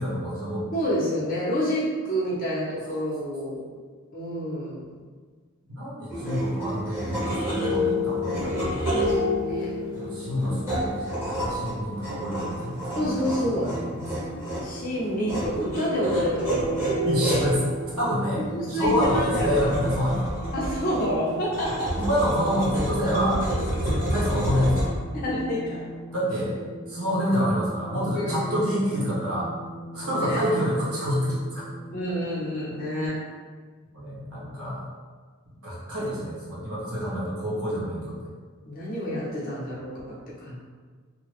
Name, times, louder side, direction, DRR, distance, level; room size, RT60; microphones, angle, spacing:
voice 1, 0.0-0.6 2.9-3.0 5.6-8.8 9.9-14.0 17.0-17.6 18.0-18.4 18.7-20.4 22.0-23.4 23.8-24.9 26.1-26.6 26.9-29.5 29.9-31.6 33.9-34.9 35.6-38.3, equal, 90° right, -7 dB, 1.1 m, -27 dB
voice 2, 0.7-3.6 4.1-4.9 9.4-9.7 10.4-10.7 13.0-13.7 14.6-16.8 18.5-19.1 19.4-19.7 20.5-22.0 23.8-24.0 25.1-25.8 28.1-28.6 30.0-30.4 31.9-33.2 38.7-40.6, equal, 40° left, -7 dB, 0.8 m, -28 dB
sound 1, 6.1-24.8, equal, 10° right, 1.0 m, -29 dB
sound 2, 13.4-33.1, equal, 25° right, 0.5 m, -41 dB
2.8 x 2.3 x 3.1 m, 1.5 s
head